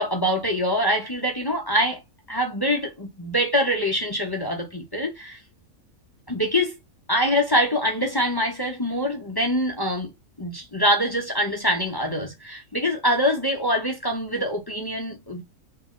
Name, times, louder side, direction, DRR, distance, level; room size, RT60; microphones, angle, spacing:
voice 1, 0.0-2.0 2.3-5.4 6.3-6.8 7.1-10.1 10.4-15.4, equal, 25° left, 0.5 m, -24 dB
3.4 x 2.9 x 3.6 m
omnidirectional pair, 1.5 m